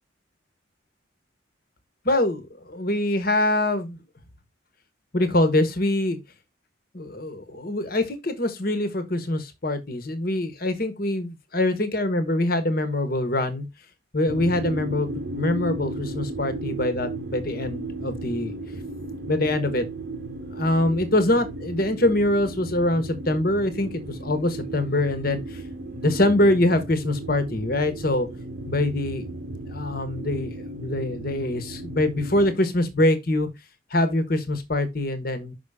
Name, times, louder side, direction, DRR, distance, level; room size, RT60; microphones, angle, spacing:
voice 1, 2.0-4.0 5.1-6.2 6.9-13.7 14.1-18.6 19.3-19.9 20.5-25.6 25.9-28.3 28.7-29.3 29.7-33.5 33.9-35.5, left 1 dB, 50° left, 1.3 m, -24 dB
sound 1, 14.3-32.5, right 2 dB, 55° right, 0.9 m, -35 dB
6.0 x 5.6 x 3.6 m
head